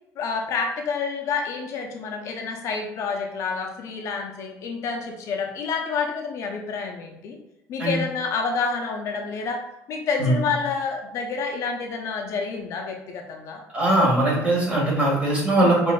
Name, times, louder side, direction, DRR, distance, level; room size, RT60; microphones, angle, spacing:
voice 1, 0.2-7.4 7.7-9.6 9.9-13.6 15.6-15.8, left 5 dB, 55° left, 2 dB, 0.5 m, -28 dB
voice 2, 13.7-15.9, right 1 dB, 20° right, -4 dB, 1.5 m, -20 dB
5.4 x 2.6 x 2.2 m, 0.89 s
cardioid pair, 125°, 6 cm